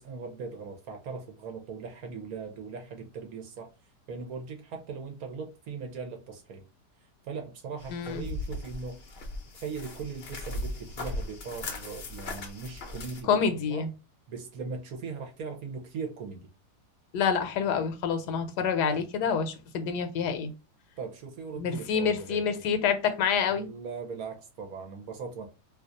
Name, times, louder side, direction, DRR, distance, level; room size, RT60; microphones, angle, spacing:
voice 1, 0.0-3.7 4.1-6.6 7.2-9.1 9.6-13.9 14.3-16.5 18.8-19.0 21.0-22.6 23.5-25.5, right 5 dB, 65° right, 1.1 m, -39 dB
sound 1, 7.8-13.2, left 2 dB, 55° left, 0.7 m, -38 dB
voice 2, 7.9-8.2 13.3-13.9 17.1-20.5 21.6-23.7, left 6 dB, 75° left, 1.2 m, -27 dB
2.9 x 2.3 x 3.7 m
omnidirectional pair, 1.8 m